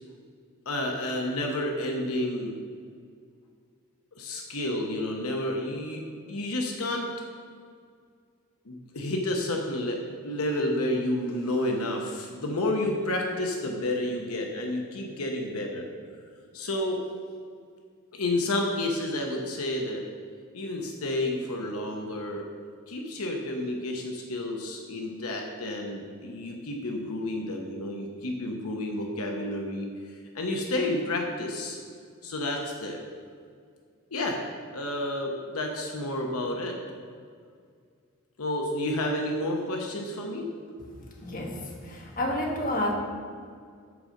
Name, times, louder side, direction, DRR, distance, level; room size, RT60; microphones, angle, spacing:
voice 1, 0.7-2.6 4.1-6.0 6.3-7.1 8.6-15.9 16.5-17.0 18.1-20.0 20.5-22.4 22.9-31.8 32.2-33.0 34.1-34.4 34.7-36.8 38.4-40.4, left 1 dB, 75° left, 1 dB, 0.9 m, -30 dB
voice 2, 41.2-42.9, left 1 dB, 40° left, -1 dB, 1.3 m, -30 dB
8.1 x 5.1 x 6.4 m, 2.1 s
head